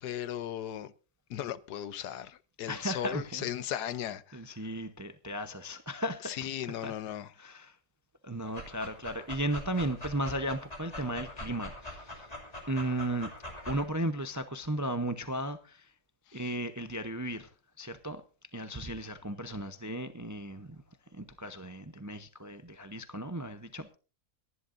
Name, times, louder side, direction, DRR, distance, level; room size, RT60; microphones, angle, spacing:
voice 1, 0.0-0.9 1.3-4.4 6.2-7.3 16.3-16.5, left 11 dB, 90° left, 1.4 m, -37 dB
voice 2, 2.7-3.8 4.3-6.5 6.8-6.9 7.4-7.8 8.2-12.3 12.7-13.3 13.7-15.9 16.3-17.5 17.8-18.2 18.5-20.8 21.1-24.0, right 1 dB, 25° right, 0.4 m, -35 dB
Dog, 8.4-13.9, left 1 dB, 25° left, 2.7 m, -43 dB
25.5 x 11.0 x 2.6 m
omnidirectional pair, 1.7 m